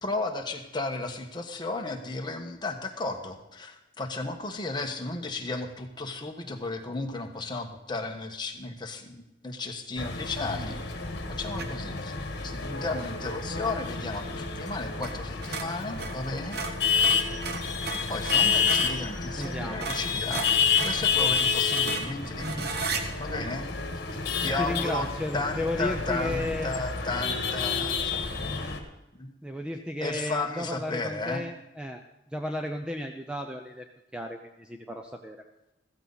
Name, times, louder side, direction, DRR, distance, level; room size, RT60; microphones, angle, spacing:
voice 1, 0.0-10.9 11.3-12.1 12.4-16.6 18.1-22.7 23.2-23.7 24.4-25.1 25.3-28.7 29.2-29.3 30.0-31.4, left 3 dB, 25° left, 3 dB, 1.3 m, -34 dB
sound 1, 10.0-28.8, left 6 dB, 60° left, 1.7 m, -29 dB
sound 2, 11.6-11.9 15.0-15.2 15.4-19.0 19.4-19.5 19.8-23.0, right 4 dB, 55° right, 1.3 m, -35 dB
sound 3, 15.7-16.5 17.1-17.6 18.1-25.6 25.9-26.2 26.6-26.8, right 1 dB, 90° right, 2.8 m, -49 dB
voice 2, 19.4-19.9 24.6-26.7 29.4-32.0 32.3-33.9 34.1-35.4, left 1 dB, 5° right, 4 dB, 0.6 m, -34 dB
15.0 x 14.0 x 4.1 m, 0.92 s
head